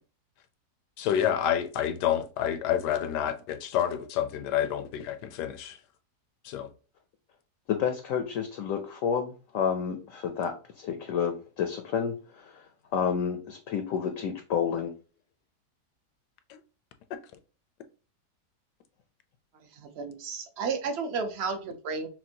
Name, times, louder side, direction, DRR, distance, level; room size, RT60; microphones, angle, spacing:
voice 1, 1.0-5.8 6.4-6.7, left 10 dB, 85° left, 1.2 m, -28 dB
voice 2, 7.7-12.6 12.9-14.9, left 7 dB, 70° left, 0.8 m, -30 dB
voice 3, 19.8-22.1, right 5 dB, 55° right, 0.8 m, -32 dB
5.9 x 2.2 x 2.8 m
omnidirectional pair, 1.7 m